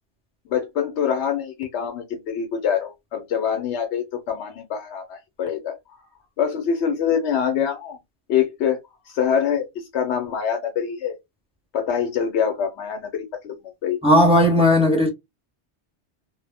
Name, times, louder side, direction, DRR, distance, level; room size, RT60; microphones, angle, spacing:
voice 1, 0.5-5.8 6.4-8.0 8.3-8.8 9.0-11.2 11.7-13.5 13.8-14.0, left 8 dB, 80° left, 0.9 m, -25 dB
voice 2, 14.0-15.1, left 1 dB, 5° right, 0.6 m, -16 dB
2.0 x 2.0 x 3.2 m
omnidirectional pair, 1.2 m